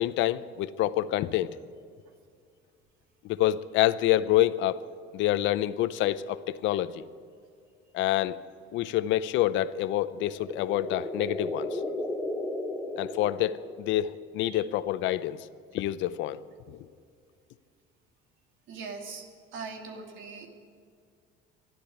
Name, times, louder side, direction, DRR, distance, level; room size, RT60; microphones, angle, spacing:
voice 1, 0.0-1.5 3.2-4.8 5.1-7.0 7.9-8.4 8.7-11.8 13.0-15.4 15.7-16.4 16.7-16.8, left 14 dB, 70° left, 15 dB, 0.7 m, -27 dB
sound 1, 10.0-14.1, left 2 dB, 5° left, 2.1 m, -35 dB
voice 2, 18.7-19.2 19.5-20.5, right 4 dB, 75° right, 3 dB, 2.5 m, -40 dB
12.5 x 12.0 x 9.5 m, 2.3 s
cardioid pair, 120°, 20 cm